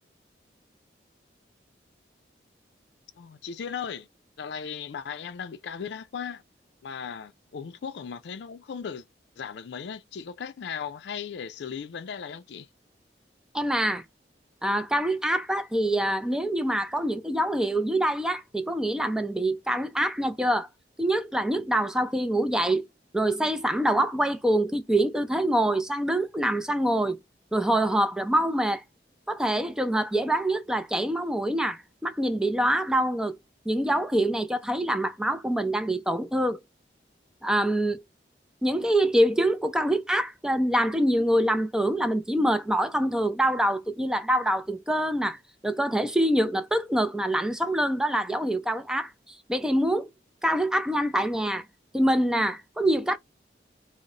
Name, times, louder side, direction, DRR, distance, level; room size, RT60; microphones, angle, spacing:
voice 1, 3.2-4.1 4.4-6.4 6.8-9.0 9.4-12.7, left 7 dB, 75° left, 0.4 m, -37 dB
voice 2, 13.5-14.0 14.6-20.7 21.0-22.9 23.1-27.2 27.5-28.8 29.3-33.4 33.7-36.6 37.4-38.0 38.6-50.1 50.4-51.7 51.9-53.2, right 1 dB, 5° right, 0.3 m, -25 dB
4.0 x 2.0 x 3.7 m
head